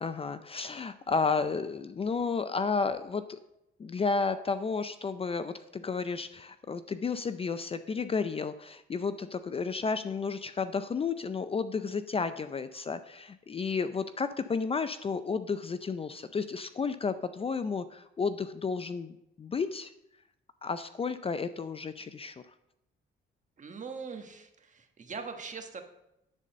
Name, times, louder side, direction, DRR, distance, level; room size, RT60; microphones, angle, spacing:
voice 1, 0.0-3.4 3.8-19.9 20.6-22.3, left 5 dB, 30° left, 11 dB, 0.4 m, -32 dB
voice 2, 23.6-25.8, right 5 dB, 40° right, 5 dB, 1.3 m, -41 dB
10.5 x 4.0 x 6.6 m, 0.85 s
cardioid pair, 90°, 20 cm